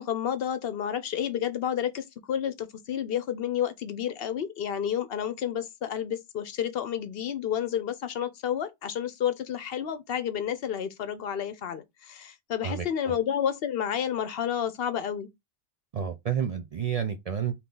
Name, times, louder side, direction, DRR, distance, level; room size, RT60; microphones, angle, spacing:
voice 1, 0.0-15.3, left 9 dB, 70° left, 0.8 m, -30 dB
voice 2, 12.6-13.2 15.9-17.5, right 8 dB, 55° right, 0.4 m, -30 dB
3.5 x 2.9 x 3.8 m
omnidirectional pair, 1.1 m